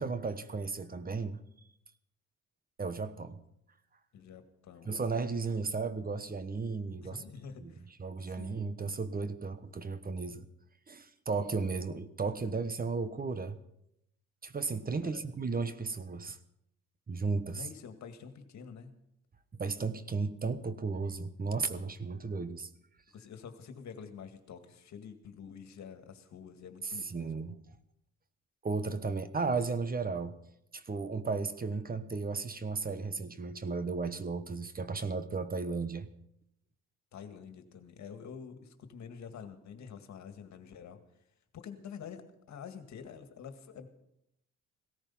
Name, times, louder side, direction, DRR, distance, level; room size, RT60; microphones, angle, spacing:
voice 1, 0.0-1.4 2.8-3.4 4.8-7.2 7.6-7.7 8.0-10.5 10.9-13.6 14.4-16.4 17.1-17.7 19.5-22.7 26.8-27.6 28.6-30.4 30.7-36.1, right 4 dB, 30° right, 12 dB, 1.2 m, -34 dB
voice 2, 4.1-4.9 7.0-7.9 8.3-8.6 15.0-15.2 17.5-18.9 23.1-27.3 29.0-29.2 37.1-41.0 41.5-42.2 42.5-43.9, left 7 dB, 65° left, 7 dB, 2.0 m, -47 dB
17.0 x 13.5 x 5.6 m, 0.78 s
cardioid pair, 90°, 30 cm